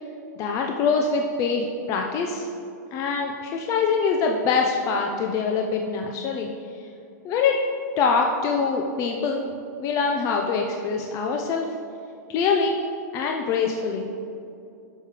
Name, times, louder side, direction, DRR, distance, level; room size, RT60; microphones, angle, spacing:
voice 1, 0.4-2.5 2.9-6.5 7.2-7.6 8.0-9.4 9.8-11.7 12.3-12.8 13.1-14.1, left 5 dB, 35° left, 2 dB, 0.7 m, -24 dB
11.5 x 4.8 x 5.0 m, 2.5 s
hypercardioid pair, 135°, 10 cm